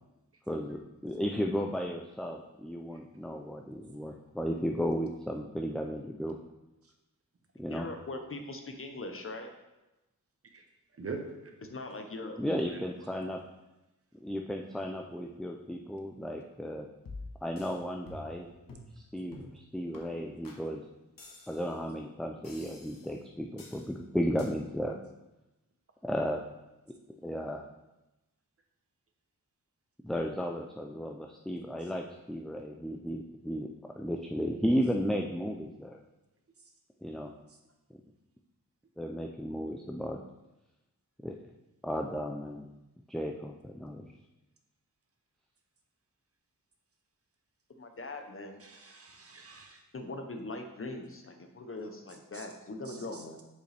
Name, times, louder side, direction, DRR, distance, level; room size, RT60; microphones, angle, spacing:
voice 1, 0.5-6.4 7.6-7.9 12.4-13.4 14.2-16.9 17.4-18.5 19.0-20.8 21.5-25.0 26.0-26.5 27.2-27.6 30.0-33.7 34.0-36.0 37.0-37.3 39.0-40.2 41.2-41.3 41.8-42.7 43.1-44.1, equal, ahead, 1 dB, 0.3 m, -34 dB
voice 2, 7.7-9.5 11.6-12.4 47.8-48.6 49.9-53.4, left 2 dB, 40° left, 4 dB, 0.7 m, -41 dB
voice 3, 11.0-11.5 48.6-49.8 52.3-52.5 52.9-53.4, right 4 dB, 45° right, 3 dB, 0.8 m, -43 dB
sound 1, 17.1-17.8 18.1-18.4 18.7-18.9 19.3-19.6 19.9-20.0 20.4-20.6 21.2-21.8 22.4-23.2 23.6-23.9 24.4-24.5, left 2 dB, 75° left, 1.2 m, -47 dB
6.4 x 5.3 x 3.4 m, 0.99 s
wide cardioid pair, 125°, 34 cm